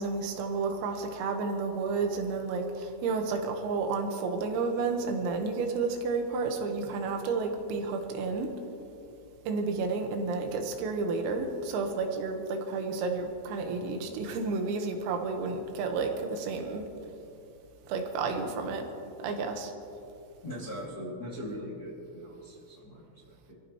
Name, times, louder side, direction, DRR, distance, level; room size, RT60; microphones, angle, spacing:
voice 1, 0.0-8.5 9.5-16.9 17.9-18.9 19.2-19.7, right 4 dB, 90° right, 3 dB, 4.1 m, -31 dB
voice 2, 20.4-23.5, equal, 35° left, -6 dB, 1.6 m, -40 dB
26.5 x 15.0 x 3.2 m, 2.8 s
omnidirectional pair, 5.9 m